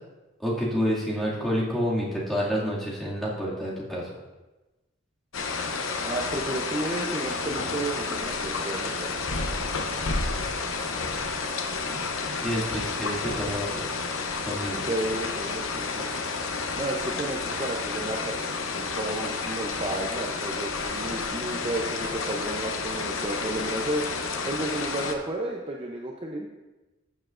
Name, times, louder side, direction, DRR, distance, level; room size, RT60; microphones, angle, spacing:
voice 1, 0.4-4.1 12.3-14.0 14.4-14.8, equal, ahead, -8 dB, 2.2 m, -29 dB
sound 1, 5.3-25.1, left 4 dB, 85° left, 0.9 m, -31 dB
voice 2, 6.0-9.3 9.7-10.1 14.9-16.1 16.8-26.5, right 1 dB, 30° right, -1 dB, 0.6 m, -32 dB
14.5 x 7.0 x 2.5 m, 1.1 s
head